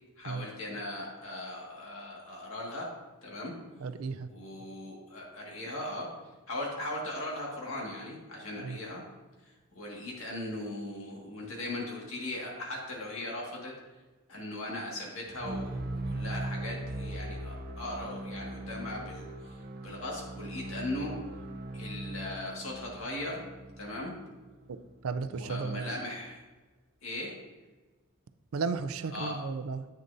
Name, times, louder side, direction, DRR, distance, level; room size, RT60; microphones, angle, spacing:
voice 1, 0.2-3.0 3.2-3.5 4.3-6.2 6.5-9.0 9.8-13.8 14.3-15.8 16.1-21.2 21.7-23.5 23.8-24.2 25.3-26.4 27.0-27.4 29.1-29.4, left 1 dB, 70° left, -3 dB, 1.9 m, -38 dB
voice 2, 3.8-4.3 8.6-8.8 25.0-25.9 28.5-29.9, right 4 dB, 80° right, 11 dB, 0.4 m, -34 dB
sound 1, 15.3-25.3, right 1 dB, 45° right, 0.7 m, -40 dB
8.8 x 6.6 x 2.7 m, 1.2 s
head